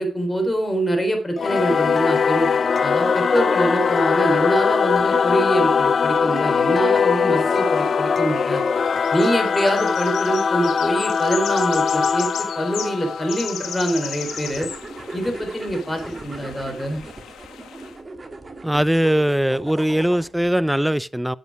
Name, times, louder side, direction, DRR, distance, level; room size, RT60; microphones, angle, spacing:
voice 1, 0.0-2.5 2.8-8.6 9.1-14.7 15.1-17.0, right 1 dB, 15° left, 3.9 m, -24 dB
Singing / Musical instrument, 1.4-14.3, left 6 dB, 55° left, 0.6 m, -21 dB
sound 1, 7.4-18.0, left 8 dB, 85° left, 1.4 m, -36 dB
sound 2, 14.2-20.5, right 3 dB, 35° right, 1.9 m, -38 dB
voice 2, 18.6-21.4, right 1 dB, 5° right, 0.5 m, -20 dB
9.3 x 8.0 x 4.8 m
supercardioid pair, 50°, 0 cm